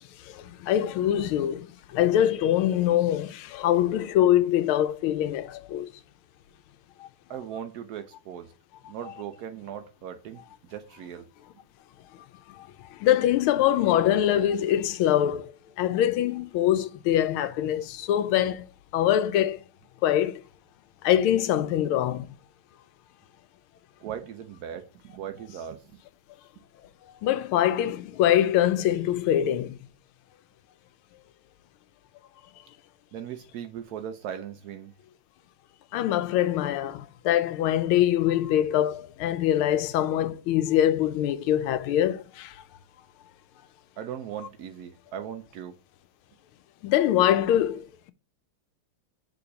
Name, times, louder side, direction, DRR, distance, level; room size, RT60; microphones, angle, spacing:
voice 1, 0.2-5.9 7.0-7.1 12.5-15.5 15.8-18.7 18.9-19.6 20.0-20.4 21.0-22.3 27.2-29.8 35.9-42.6 46.8-48.1, left 11 dB, 85° left, 1.4 m, -24 dB
voice 2, 7.3-8.5 8.9-10.4 10.7-11.3 24.0-26.0 33.1-34.9 44.0-45.8, right 9 dB, 80° right, 0.8 m, -38 dB
6.9 x 3.8 x 5.1 m
omnidirectional pair, 2.3 m